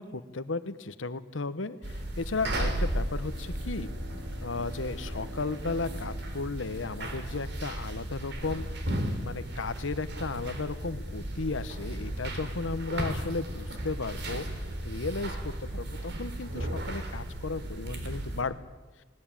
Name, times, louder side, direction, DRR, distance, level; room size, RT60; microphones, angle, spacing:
voice 1, 0.0-3.9 4.4-8.7 9.2-14.4 14.8-18.6, left 3 dB, 80° left, 14 dB, 1.0 m, -35 dB
sound 1, 1.8-18.4, right 1 dB, 60° right, 3.5 m, -35 dB
Bowed string instrument, 2.8-7.6, left 1 dB, 10° right, 4.7 m, -49 dB
20.0 x 18.5 x 9.0 m, 1.2 s
head